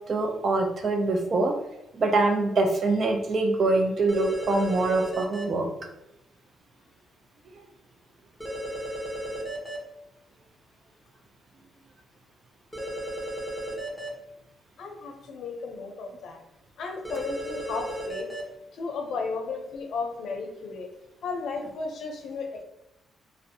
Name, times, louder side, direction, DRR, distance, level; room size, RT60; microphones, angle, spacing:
voice 1, 0.1-1.5 2.0-5.7, right 2 dB, 50° right, 4 dB, 0.5 m, -24 dB
sound 1, 4.1-5.4 8.4-9.8 12.7-14.1 17.0-18.4, right 1 dB, 5° left, 0.9 m, -34 dB
voice 2, 14.8-16.4 16.8-18.3 18.7-20.9 21.2-22.6, left 4 dB, 70° left, 3 dB, 0.5 m, -34 dB
2.5 x 2.1 x 2.7 m, 0.90 s
cardioid pair, 80°, 0 cm